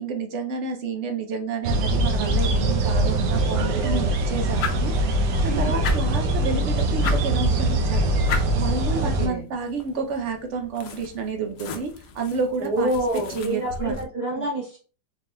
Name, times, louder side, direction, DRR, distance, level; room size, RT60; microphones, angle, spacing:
voice 1, 0.0-4.9 5.4-8.1 8.5-12.9 13.3-13.9, right 4 dB, 65° right, 4 dB, 0.7 m, -30 dB
sound 1, 1.6-9.3, right 1 dB, 85° right, 1.3 m, -22 dB
voice 2, 3.5-4.2 5.4-5.9 8.9-9.5 12.6-14.8, right 1 dB, 45° right, -3 dB, 1.0 m, -28 dB
sound 2, 4.5-14.1, left 3 dB, 80° left, 1.2 m, -36 dB
4.2 x 3.6 x 2.2 m, 0.36 s
omnidirectional pair, 1.8 m